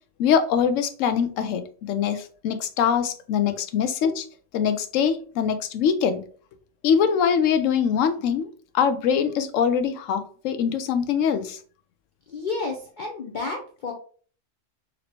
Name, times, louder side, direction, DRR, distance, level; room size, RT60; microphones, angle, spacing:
voice 1, 0.2-4.3 4.5-6.2 6.8-8.5 8.7-11.6, left 7 dB, 80° left, 10 dB, 0.9 m, -23 dB
voice 2, 12.3-13.9, left 3 dB, 50° left, 0 dB, 0.6 m, -31 dB
4.0 x 3.0 x 2.9 m, 0.43 s
omnidirectional pair, 1.3 m